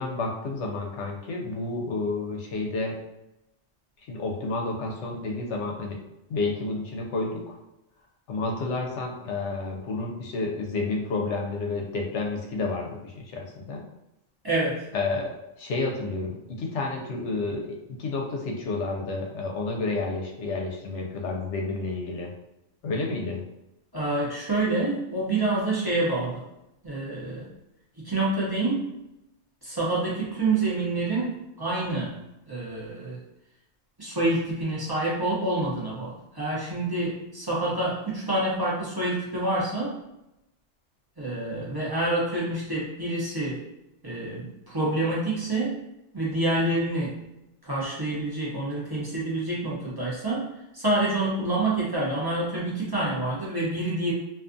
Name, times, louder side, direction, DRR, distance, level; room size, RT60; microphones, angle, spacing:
voice 1, 0.0-3.0 4.1-6.0 6.3-7.5 8.3-13.8 14.9-17.7 18.0-22.3 22.8-23.4, left 3 dB, 75° left, 0 dB, 0.9 m, -30 dB
voice 2, 14.4-14.8 23.9-26.4 26.8-27.5 28.0-28.9 29.6-32.2 32.5-33.2 34.0-39.9 41.2-43.6 44.0-45.8 46.1-47.2 47.6-50.5 50.7-54.1, right 2 dB, 25° right, -7 dB, 0.6 m, -27 dB
2.5 x 2.3 x 2.5 m, 0.89 s
omnidirectional pair, 1.2 m